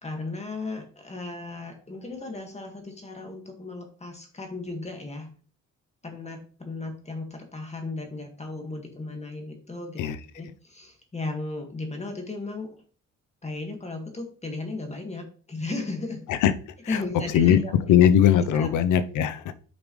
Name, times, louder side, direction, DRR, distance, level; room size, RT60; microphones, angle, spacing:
voice 1, 0.0-5.3 6.0-12.8 13.4-16.2 16.9-17.7 18.3-18.8, left 3 dB, 20° left, 1.9 m, -35 dB
voice 2, 17.9-19.5, left 9 dB, 80° left, 0.8 m, -20 dB
9.0 x 5.2 x 3.2 m
cardioid pair, 90°, 30 cm